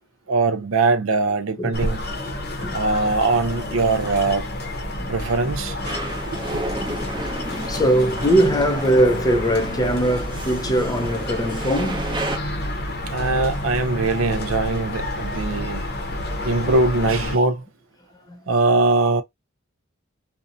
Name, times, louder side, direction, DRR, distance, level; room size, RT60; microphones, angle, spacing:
voice 1, 0.3-2.0 2.7-4.5 5.1-5.8 6.2-6.6 13.1-15.9 16.4-17.6 18.5-19.2, right 3 dB, 65° right, 0.5 m, -21 dB
sound 1, 1.7-17.4, left 1 dB, 50° left, 0.7 m, -29 dB
sound 2, 5.8-12.4, right 1 dB, 20° right, 0.7 m, -32 dB
voice 2, 7.7-12.1 18.3-18.4, right 1 dB, 20° left, 0.4 m, -21 dB
2.6 x 2.1 x 2.4 m
head